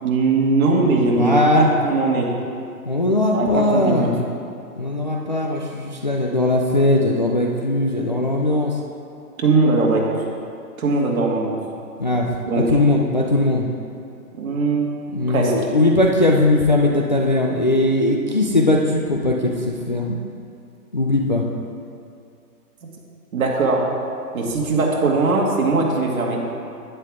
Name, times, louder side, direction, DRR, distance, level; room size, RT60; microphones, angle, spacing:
voice 1, 0.0-2.3 3.3-4.1 9.4-10.1 10.8-11.6 12.5-12.8 14.4-15.5 22.8-22.9 23.3-23.9 24.3-26.4, right 3 dB, 55° right, -2 dB, 2.2 m, -20 dB
voice 2, 1.2-1.7 2.9-4.2 4.8-8.8 12.0-13.7 15.1-20.2 20.9-21.5 24.4-24.5, left 2 dB, 30° left, 0 dB, 0.4 m, -19 dB
11.0 x 9.6 x 3.7 m, 2.4 s
hypercardioid pair, 150°, 48 cm